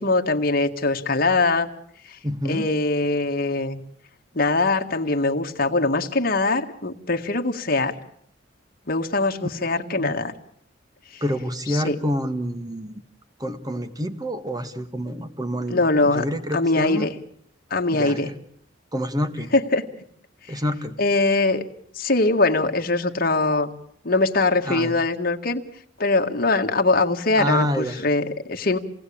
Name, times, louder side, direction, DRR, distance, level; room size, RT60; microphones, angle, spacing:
voice 1, 0.0-1.7 2.1-2.2 2.4-3.8 4.3-8.0 8.9-10.3 11.1-11.2 11.7-12.0 15.7-16.3 16.5-17.1 17.7-18.3 19.5-19.8 20.5-20.6 21.0-21.6 21.9-23.7 24.0-25.6 26.0-28.8, left 3 dB, 50° left, 4 dB, 1.8 m, -22 dB
voice 2, 2.2-2.7 9.6-10.2 11.2-13.0 13.4-17.1 17.9-18.3 18.9-19.5 20.5-21.0 24.6-24.9 27.4-28.1, equal, 20° right, 11 dB, 1.5 m, -28 dB
29.0 x 19.0 x 8.7 m, 0.68 s
head